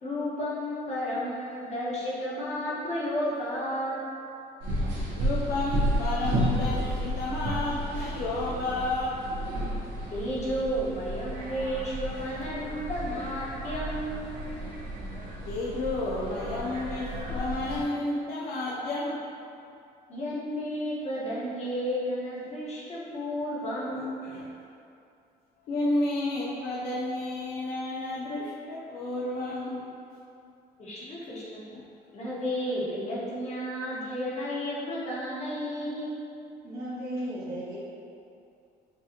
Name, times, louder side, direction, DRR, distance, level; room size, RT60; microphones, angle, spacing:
voice 1, 0.0-4.0 10.1-14.3 20.1-24.2 30.8-31.6 32.1-36.1, equal, 40° left, -7 dB, 1.3 m, -32 dB
sound 1, 4.6-17.9, equal, 80° right, 1.1 m, -32 dB
voice 2, 5.1-9.5 15.5-19.2 24.0-24.5 25.7-29.9 31.3-31.4 31.7-31.8, left 2 dB, 65° left, -6 dB, 0.6 m, -31 dB
voice 3, 36.6-37.8, right 1 dB, 60° right, -10 dB, 1.2 m, -35 dB
6.5 x 2.5 x 2.9 m, 2.6 s
cardioid pair, 110°, 17 cm